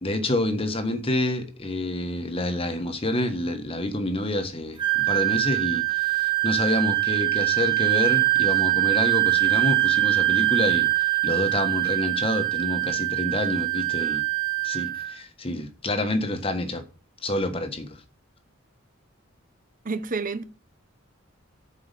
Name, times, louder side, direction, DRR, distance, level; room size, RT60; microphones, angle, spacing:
voice 1, 0.0-14.2 14.6-16.8 17.2-18.0, left 1 dB, 25° left, 1.3 m, -28 dB
Wind instrument woodwind instrument, 4.8-15.2, right 19 dB, 25° right, 1.1 m, -23 dB
voice 2, 19.8-20.4, right 4 dB, 40° right, 0.8 m, -29 dB
8.3 x 4.9 x 6.7 m
head